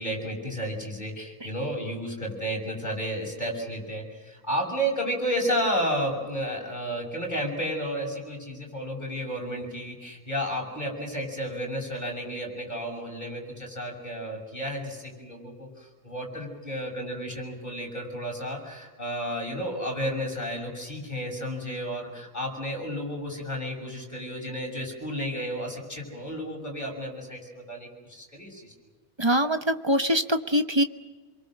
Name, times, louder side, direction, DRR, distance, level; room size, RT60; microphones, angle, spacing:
voice 1, 0.0-15.7 16.0-28.7, equal, 30° left, 0 dB, 6.7 m, -32 dB
voice 2, 29.2-30.8, equal, 20° right, 8 dB, 0.9 m, -23 dB
28.5 x 23.0 x 6.5 m, 1.3 s
omnidirectional pair, 1.5 m